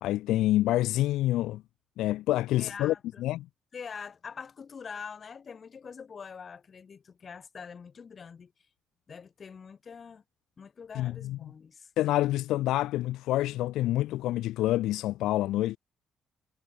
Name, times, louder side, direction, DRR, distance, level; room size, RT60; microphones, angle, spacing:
voice 1, 0.0-1.6 2.0-2.9 3.2-3.5 10.9-11.4 12.0-15.8, left 15 dB, 90° left, 1.5 m, -27 dB
voice 2, 2.6-3.3 3.7-8.5 9.1-10.2 10.6-11.9, left 6 dB, 45° left, 4.7 m, -44 dB
cardioid pair, 90°, 0 cm